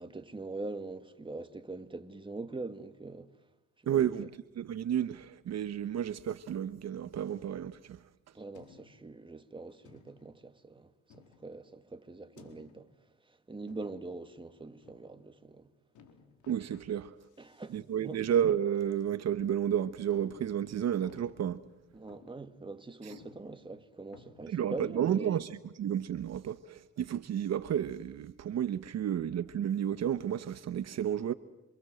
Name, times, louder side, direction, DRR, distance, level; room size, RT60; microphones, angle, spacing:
voice 1, 0.0-3.3 3.9-4.3 8.3-12.9 13.3-15.7 17.4-18.2 21.9-25.4, right 3 dB, 15° right, 2.1 m, -43 dB
voice 2, 3.9-4.3 4.6-8.0 16.5-17.1 17.7-21.6 23.0-23.1 24.5-31.3, right 9 dB, 60° right, 1.0 m, -31 dB
sound 1, 7.3-7.8 8.5-9.2 9.8-10.4 11.1-11.7 12.4-13.0 13.7-14.2 14.8-15.2 15.9-16.8 17.2-17.8 18.1-18.2 18.9-19.0 19.5-19.6 20.1-21.7 22.1-22.5 22.8-22.9 23.1-24.4, left 6 dB, 80° left, 4.2 m, -58 dB
28.0 x 27.0 x 7.8 m
cardioid pair, 90°, 30 cm